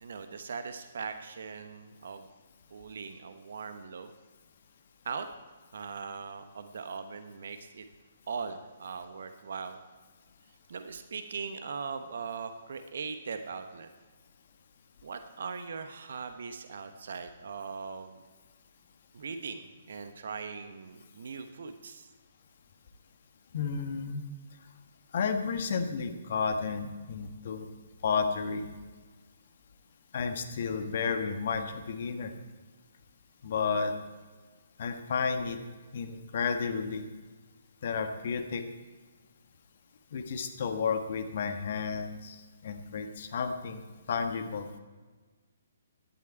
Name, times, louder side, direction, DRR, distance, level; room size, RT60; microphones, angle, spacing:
voice 1, 0.0-2.3 2.7-4.1 5.0-5.3 5.7-7.9 8.3-9.8 10.7-13.9 15.0-18.2 19.1-22.1, right 5 dB, 55° right, 9 dB, 1.0 m, -40 dB
voice 2, 23.5-24.2 25.1-27.7 28.0-28.7 30.1-32.3 33.4-33.9 34.8-35.6 35.9-37.1 37.8-38.6 40.1-44.7, left 5 dB, 45° left, 7 dB, 1.4 m, -32 dB
17.5 x 12.0 x 4.5 m, 1.4 s
figure-of-eight pair, 130°, 0 cm